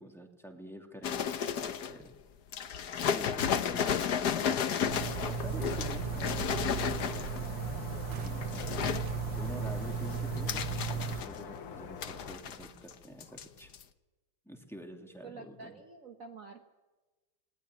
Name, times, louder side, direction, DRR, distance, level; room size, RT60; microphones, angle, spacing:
voice 1, 0.0-2.1 2.9-4.7 5.2-7.3 8.2-8.9 9.2-13.7 14.4-15.8, equal, ahead, 2 dB, 2.6 m, -47 dB
sound 1, 1.0-2.0 2.5-7.5 8.2-9.1 9.5-11.6 12.0-12.9 13.2-13.4 13.7-13.8, left 8 dB, 55° left, 1.3 m, -33 dB
sound 2, 3.6-12.4, left 7 dB, 80° left, 2.3 m, -44 dB
sound 3, 4.9-11.2, right 7 dB, 60° right, 1.7 m, -36 dB
voice 2, 15.2-16.7, right 4 dB, 40° right, 4 dB, 1.5 m, -48 dB
19.5 x 19.0 x 9.9 m, 1.2 s
omnidirectional pair, 2.4 m